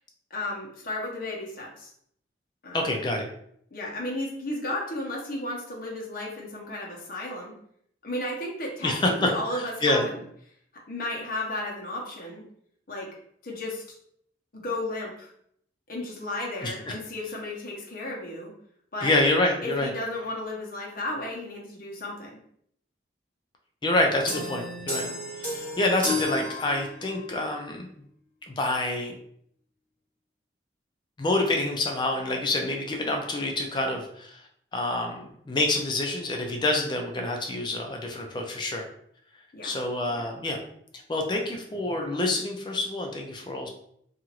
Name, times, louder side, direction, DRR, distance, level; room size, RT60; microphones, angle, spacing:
voice 1, 0.3-1.9 2.6-2.9 3.7-7.6 8.0-10.2 10.9-12.4 12.9-13.1 13.4-14.0 14.5-15.3 15.9-18.5 18.9-19.2 19.6-22.4 39.5-39.7 40.1-40.3, left 1 dB, 50° left, -2 dB, 0.7 m, -34 dB
voice 2, 2.7-3.3 8.8-9.3 9.8-10.0 16.6-16.7 19.0-19.9 23.8-25.1 25.5-27.9 28.5-29.1 31.2-34.4 34.7-38.8 39.6-40.6 41.1-43.7, left 2 dB, 25° left, 2 dB, 0.3 m, -27 dB
sound 1, 24.3-27.3, left 1 dB, 10° left, 1.4 m, -32 dB
2.9 x 2.4 x 2.9 m, 0.68 s
head